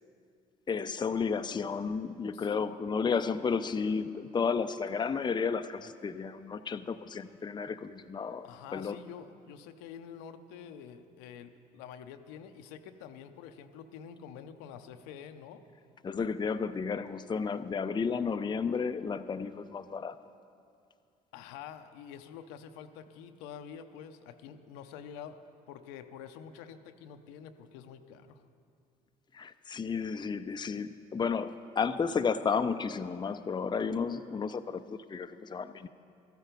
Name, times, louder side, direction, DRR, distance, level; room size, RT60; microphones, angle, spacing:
voice 1, 0.7-9.0 16.0-20.2 29.3-35.9, left 5 dB, 25° left, 9 dB, 0.6 m, -32 dB
voice 2, 8.4-15.6 21.3-28.4, left 8 dB, 75° left, 8 dB, 0.7 m, -47 dB
13.5 x 13.0 x 5.3 m, 2.5 s
hypercardioid pair, 55°, 19 cm